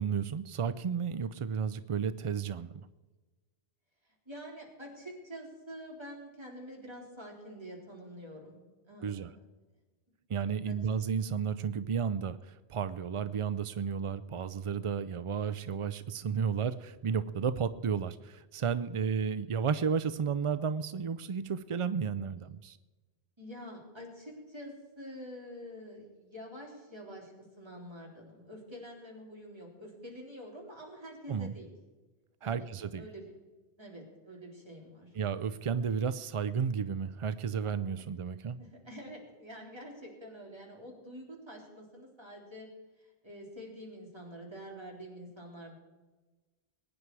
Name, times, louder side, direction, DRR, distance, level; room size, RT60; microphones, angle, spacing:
voice 1, 0.0-2.9 9.0-9.3 10.3-22.8 31.3-31.5 32.4-33.0 35.2-38.6, right 6 dB, 55° right, 14 dB, 0.3 m, -32 dB
voice 2, 4.3-8.6 8.9-9.4 10.7-10.8 23.4-31.7 32.4-33.4 33.8-35.1 38.6-42.7 43.0-45.7, equal, 25° right, -2 dB, 3.7 m, -47 dB
21.5 x 9.8 x 4.7 m, 1.2 s
omnidirectional pair, 1.1 m